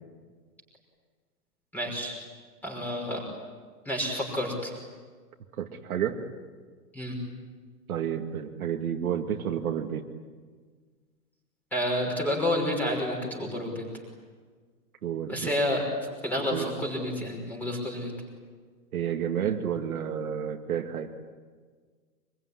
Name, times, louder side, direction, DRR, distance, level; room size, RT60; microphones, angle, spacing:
voice 1, 1.7-2.1 2.6-3.2 3.9-4.7 6.9-7.1 11.7-13.8 15.3-15.8 16.2-18.1, left 1 dB, 5° left, 0 dB, 5.6 m, -29 dB
voice 2, 5.6-6.2 7.9-10.0 15.0-15.5 16.5-16.7 18.9-21.1, right 9 dB, 60° right, 4 dB, 2.3 m, -30 dB
25.5 x 22.0 x 9.9 m, 1.5 s
hypercardioid pair, 165°, 48 cm